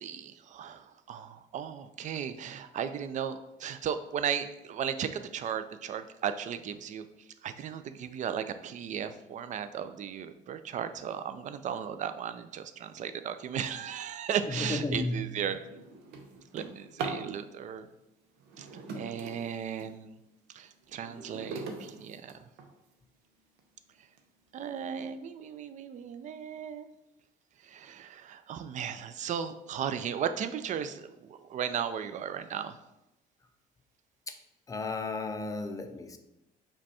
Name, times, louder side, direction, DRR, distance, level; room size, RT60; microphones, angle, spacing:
voice 1, 0.0-7.1 7.4-15.6 16.5-17.9 18.6-20.2 20.5-22.3 24.5-26.9 27.6-32.8, right 8 dB, 45° right, 10 dB, 0.4 m, -36 dB
voice 2, 14.5-15.4 34.3-34.4 34.7-36.2, left 2 dB, 20° left, 7 dB, 0.4 m, -33 dB
Drawer open or close, 14.8-14.9 15.3-17.3 18.4-20.0 20.5-22.9 23.6-23.7 24.2-24.3 24.6-25.0, right 4 dB, 90° right, 0.7 m, -42 dB
5.0 x 2.3 x 4.2 m, 0.90 s
cardioid pair, 110°, 17 cm